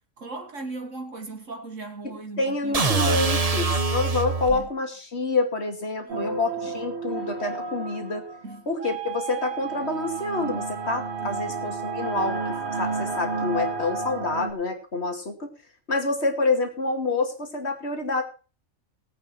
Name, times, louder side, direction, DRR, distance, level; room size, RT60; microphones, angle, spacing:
voice 1, 0.2-3.8 4.5-4.7 6.0-6.8 8.4-8.7 11.2-11.7, right 3 dB, 65° right, 2.1 m, -39 dB
voice 2, 2.4-8.3 8.7-12.4 12.8-15.5 15.9-18.2, left 3 dB, 50° left, 2.9 m, -27 dB
sound 1, 2.7-4.7, right 3 dB, 30° right, 1.2 m, -24 dB
sound 2, 6.1-8.6 9.5-14.5, right 3 dB, 45° right, 3.0 m, -32 dB
Wind instrument woodwind instrument, 8.8-14.2, right 10 dB, 90° right, 2.6 m, -35 dB
19.0 x 8.6 x 4.4 m
omnidirectional pair, 1.4 m